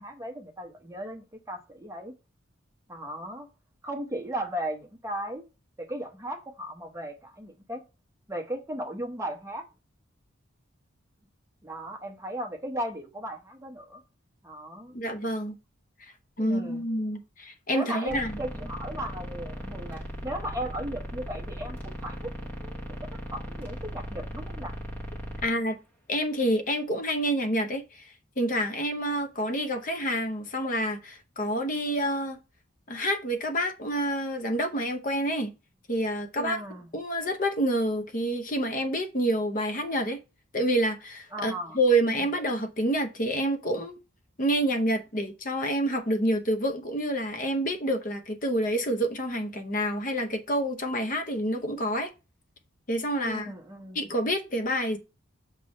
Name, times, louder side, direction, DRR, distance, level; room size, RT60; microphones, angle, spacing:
voice 1, 0.0-2.2 2.9-3.5 3.8-5.4 5.8-7.8 8.3-9.7 11.6-14.0 14.4-15.0 16.4-16.8 17.7-24.8 25.3-25.4 36.4-36.9 41.3-41.8 42.1-42.3 53.2-54.1, right 1 dB, 15° right, 0.9 m, -36 dB
voice 2, 14.9-15.6 16.0-18.4 25.4-25.8 26.1-32.4 32.9-35.5 35.9-36.6 36.9-40.2 40.5-44.0 44.4-52.1 52.9-53.5 53.9-55.0, right 1 dB, 40° left, 0.8 m, -28 dB
sound 1, 18.1-25.5, equal, 10° left, 1.1 m, -38 dB
6.7 x 3.5 x 5.2 m
head